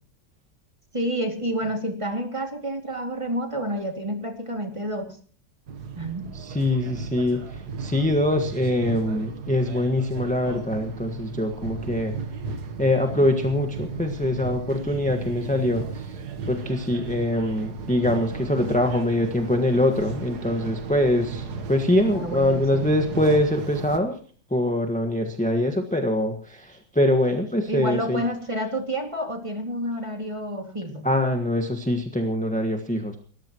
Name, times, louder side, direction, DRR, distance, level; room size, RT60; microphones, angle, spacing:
voice 1, 0.9-5.2 6.0-6.3 22.0-22.9 27.7-31.1, right 1 dB, 15° right, 4 dB, 2.4 m, -29 dB
sound 1, 5.7-24.0, right 5 dB, 65° right, 1.7 m, -35 dB
voice 2, 6.3-12.1 12.8-16.2 16.5-24.2 24.5-28.2 31.0-33.2, left 1 dB, 5° left, 4 dB, 1.3 m, -24 dB
29.0 x 14.0 x 3.0 m, 0.41 s
omnidirectional pair, 1.9 m